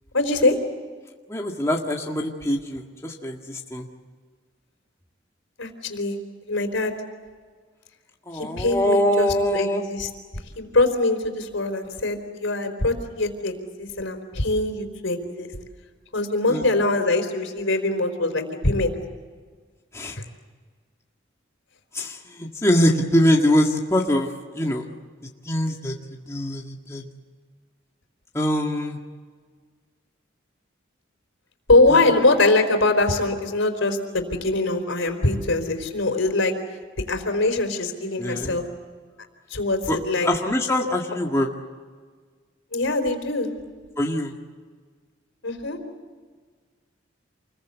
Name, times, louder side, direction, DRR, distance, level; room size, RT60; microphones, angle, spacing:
voice 1, 0.1-0.6 5.6-6.9 8.3-10.1 10.6-15.5 16.1-18.9 20.2-20.3 31.7-36.5 37.1-38.7 39.5-40.3 42.7-43.5 45.4-45.8, left 2 dB, 80° left, 6 dB, 4.2 m, -23 dB
voice 2, 1.3-3.9 8.3-9.8 16.5-16.6 19.9-20.2 21.9-24.3 24.6-24.8 25.5-25.9 26.3-27.0 28.3-29.0 31.9-32.0 38.2-38.6 39.9-40.0 40.2-41.5 44.0-44.3, left 1 dB, 15° left, 0 dB, 1.8 m, -23 dB
28.5 x 22.0 x 8.3 m, 1.5 s
head